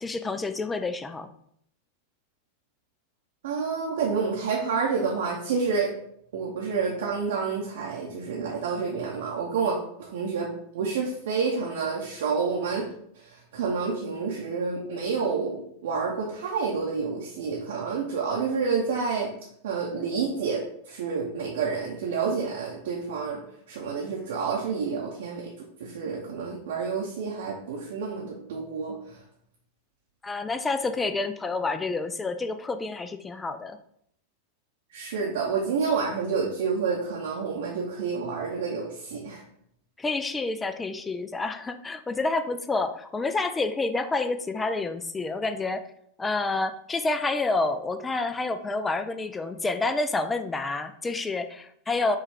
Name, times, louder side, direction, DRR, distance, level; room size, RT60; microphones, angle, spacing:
voice 1, 0.0-1.3 30.2-33.8 40.0-45.8 46.2-52.2, left 3 dB, 15° left, 9 dB, 0.3 m, -28 dB
voice 2, 3.4-5.9 6.3-12.9 13.2-19.3 19.6-23.4 23.7-25.5 25.8-29.2 34.9-39.4, right 5 dB, 60° right, -2 dB, 0.7 m, -29 dB
5.3 x 2.3 x 3.4 m, 0.70 s
figure-of-eight pair, 90°, 0 cm